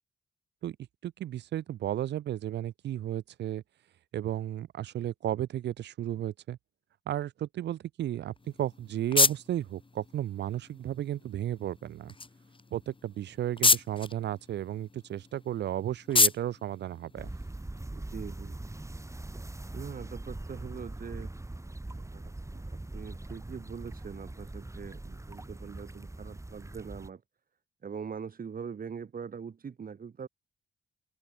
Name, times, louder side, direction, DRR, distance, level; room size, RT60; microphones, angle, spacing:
voice 1, 1.0-3.6 4.1-6.6 7.1-12.1 12.7-17.3, right 12 dB, 85° right, 2.6 m, -34 dB
sound 1, 8.4-17.8, left 3 dB, 30° left, 3.4 m, -31 dB
sound 2, 17.2-27.1, right 2 dB, 15° right, 6.3 m, -42 dB
voice 2, 17.9-18.6 19.7-21.3 22.0-27.2 27.8-30.3, right 6 dB, 55° right, 5.5 m, -42 dB
open air
cardioid pair, 65°, 17 cm